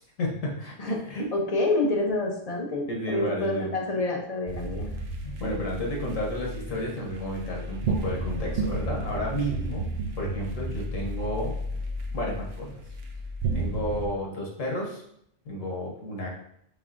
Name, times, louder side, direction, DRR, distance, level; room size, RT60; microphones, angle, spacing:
voice 1, 0.2-1.3 2.9-3.7 5.2-9.9 10.2-11.5 12.1-12.8 13.5-15.0 15.4-16.3, equal, 85° left, -2 dB, 1.4 m, -32 dB
voice 2, 1.3-4.9, left 2 dB, 40° left, 0 dB, 0.6 m, -27 dB
sound 1, 4.5-14.1, right 2 dB, 60° right, 0.7 m, -32 dB
4.9 x 3.5 x 2.5 m, 0.73 s
omnidirectional pair, 1.3 m